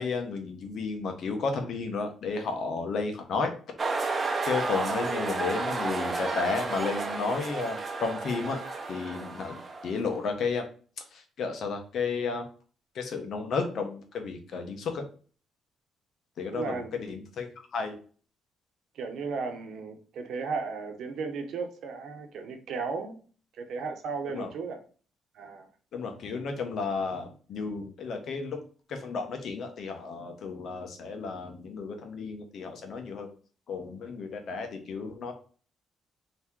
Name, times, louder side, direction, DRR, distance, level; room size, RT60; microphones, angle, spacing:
voice 1, 0.0-3.5 4.4-8.6 8.9-10.7 11.0-12.4 12.9-15.0 16.4-18.0 24.3-24.5 25.9-28.6 28.9-33.3 33.7-35.3, left 4 dB, 65° left, 1.1 m, -33 dB
sound 1, 3.8-10.1, right 3 dB, 35° right, 0.8 m, -32 dB
voice 2, 16.5-16.9 18.9-23.2 23.6-24.8 25.3-25.7, right 4 dB, 70° right, 0.9 m, -35 dB
3.5 x 3.2 x 4.5 m
cardioid pair, 90°, 0 cm